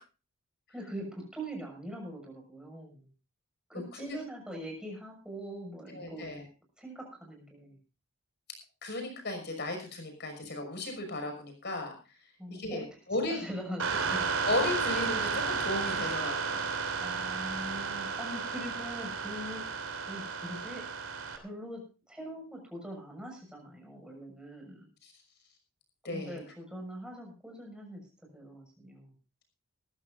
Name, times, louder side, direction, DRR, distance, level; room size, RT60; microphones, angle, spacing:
voice 1, 0.7-3.1 3.7-6.3 6.8-7.8 12.4-12.8 13.2-14.3 17.0-20.8 21.4-21.8 22.1-24.9 26.1-28.1 28.3-29.1, equal, 5° right, 1 dB, 6.4 m, -42 dB
voice 2, 5.9-6.4 8.8-12.0 12.5-13.4 14.4-16.7 25.0-25.1 26.0-26.4, left 2 dB, 55° left, 5 dB, 5.9 m, -35 dB
sound 1, 13.8-21.4, right 5 dB, 80° right, 2.9 m, -33 dB
21.0 x 14.5 x 2.6 m, 0.32 s
head